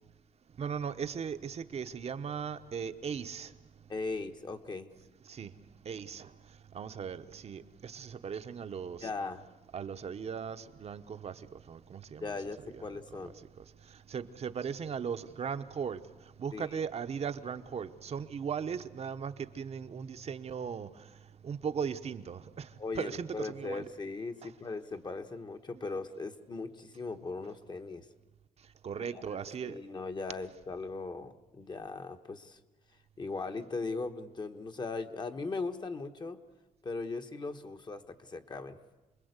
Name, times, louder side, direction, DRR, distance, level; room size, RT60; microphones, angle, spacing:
voice 1, 0.6-3.5 5.2-5.5 5.8-9.1 9.7-12.4 12.7-23.9 24.4-24.5 25.7-25.8 28.6-29.8, right 7 dB, 50° right, 9 dB, 0.9 m, -38 dB
voice 2, 3.9-4.9 9.0-9.4 12.2-13.3 16.5-16.8 22.8-28.0 29.1-29.2 29.6-32.6 33.2-36.4 36.8-38.8, left 3 dB, 30° left, 6 dB, 1.1 m, -38 dB
27.5 x 21.0 x 8.1 m, 1.1 s
wide cardioid pair, 155°, 14 cm